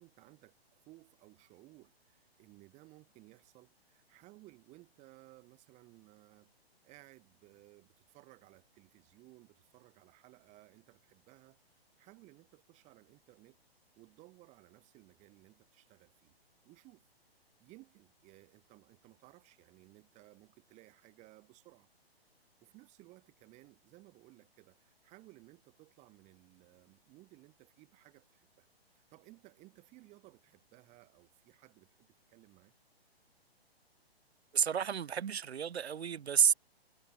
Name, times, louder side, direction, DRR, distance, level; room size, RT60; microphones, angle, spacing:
voice 1, 0.0-6.5 6.8-13.6 14.0-16.4 16.6-17.1 17.6-21.9 22.4-32.7, right 21 dB, 20° right, 2.0 m, -60 dB
voice 2, 34.5-36.5, right 8 dB, 85° right, 0.5 m, -30 dB
figure-of-eight pair, 130°, 31 cm